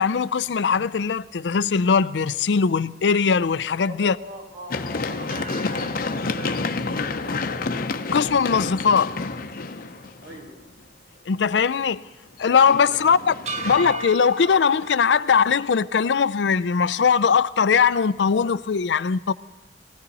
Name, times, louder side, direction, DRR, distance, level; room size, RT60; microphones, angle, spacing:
voice 1, 0.0-4.2 8.1-9.1 11.3-12.0 12.4-13.3 13.6-19.3, left 6 dB, 85° left, 0.5 m, -20 dB
voice 2, 3.9-7.4 10.2-10.5 12.9-13.1, equal, 70° right, 5.8 m, -42 dB
Run, 4.7-10.5 12.4-13.9, left 3 dB, 55° left, 0.8 m, -29 dB
sound 1, 5.3-9.6 10.0-10.1 13.5-16.1, right 3 dB, 40° right, 0.9 m, -38 dB
22.0 x 16.0 x 4.1 m
head